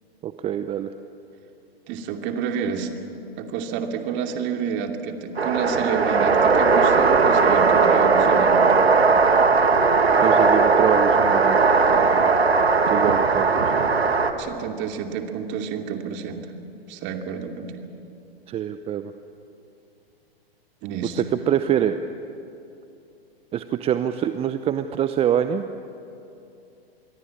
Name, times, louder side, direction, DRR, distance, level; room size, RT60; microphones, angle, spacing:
voice 1, 0.2-0.9 10.2-11.6 12.9-13.8 18.5-19.1 21.2-22.0 23.5-25.6, right 10 dB, 20° right, 10 dB, 0.7 m, -25 dB
voice 2, 1.9-2.9 3.4-8.6 11.9-12.4 14.4-16.5 16.9-17.8 20.8-21.2, right 7 dB, 35° right, 4 dB, 2.7 m, -29 dB
sound 1, 5.4-14.3, right 4 dB, 85° right, 1.9 m, -18 dB
26.5 x 22.5 x 8.8 m, 2.7 s
figure-of-eight pair, 110°, 31 cm